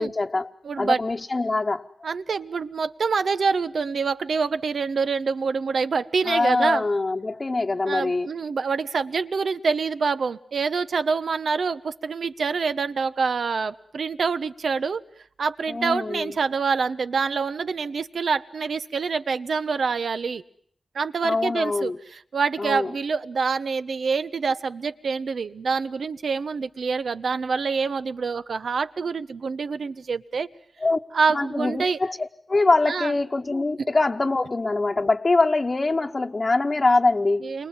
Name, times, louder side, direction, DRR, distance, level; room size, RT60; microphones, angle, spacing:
voice 1, 0.0-0.5 0.8-1.9 6.2-8.3 15.7-16.3 21.2-22.0 22.6-22.9 30.8-31.0 31.3-37.5, left 3 dB, 30° left, 1 dB, 1.1 m, -23 dB
voice 2, 0.6-1.0 2.0-6.8 7.9-15.0 15.4-20.4 20.9-30.5 31.1-32.0 32.9-33.1 33.8-33.9 37.4-37.7, right 5 dB, 75° right, 12 dB, 1.2 m, -26 dB
29.5 x 24.5 x 7.6 m, 0.66 s
wide cardioid pair, 125°, 0 cm